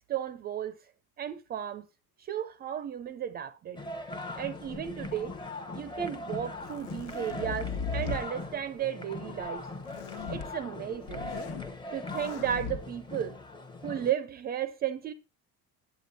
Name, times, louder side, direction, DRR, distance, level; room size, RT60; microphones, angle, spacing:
voice 1, 0.1-0.8 1.2-1.9 2.2-3.8 4.4-5.3 5.7-9.7 10.3-11.3 11.9-13.4 13.8-15.1, right 10 dB, 30° right, 0.5 m, -34 dB
sound 1, 3.8-14.1, left 2 dB, 15° left, 0.8 m, -40 dB
sound 2, 4.7-5.5 6.4-8.3 9.8-10.5 10.9-11.7 12.1-12.8, left 5 dB, 65° left, 1.2 m, -38 dB
9.4 x 8.1 x 4.0 m
cardioid pair, 170°, 34 cm